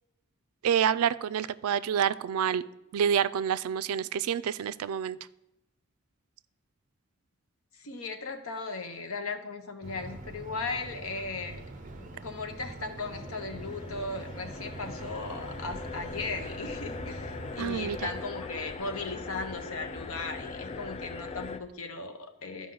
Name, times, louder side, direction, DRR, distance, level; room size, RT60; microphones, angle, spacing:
voice 1, 0.6-2.6 2.9-5.2 17.6-18.1, right 8 dB, 90° right, 16 dB, 0.3 m, -28 dB
voice 2, 7.8-11.6 12.0-22.7, left 3 dB, 80° left, 6 dB, 1.0 m, -37 dB
sound 1, 9.8-18.2, right 2 dB, 35° right, 0.7 m, -44 dB
sound 2, 13.1-21.6, left 3 dB, 30° left, 0.4 m, -40 dB
12.5 x 5.0 x 3.9 m, 0.90 s
head